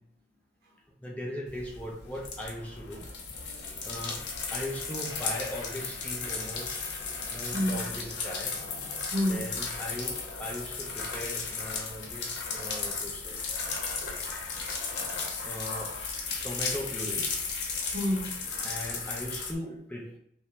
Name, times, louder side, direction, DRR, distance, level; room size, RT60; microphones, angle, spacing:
voice 1, 0.9-3.1 3.8-4.2 4.5-6.8 7.3-8.6 9.3-14.6 15.2-15.9 16.4-17.3 18.6-20.2, left 1 dB, 10° left, 0.4 m, -39 dB
sound 1, 1.5-19.5, left 4 dB, 70° left, 0.5 m, -35 dB
voice 2, 3.3-3.9 6.2-6.3 7.1-7.2 7.5-7.8 9.1-9.5 17.9-18.5 19.6-19.8, equal, 60° right, 0.7 m, -31 dB
2.5 x 2.1 x 2.9 m
head